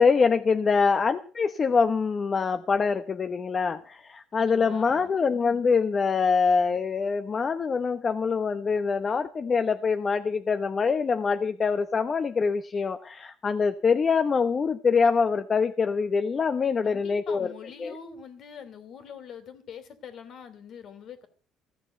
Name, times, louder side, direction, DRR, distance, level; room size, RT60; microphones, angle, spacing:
voice 1, 0.0-17.5 17.8-18.0, left 5 dB, 30° left, 9 dB, 0.8 m, -24 dB
voice 2, 4.3-5.1 16.8-21.3, left 6 dB, 55° left, 10 dB, 2.9 m, -44 dB
15.0 x 6.7 x 9.1 m, 0.43 s
cardioid pair, 120°, 0 cm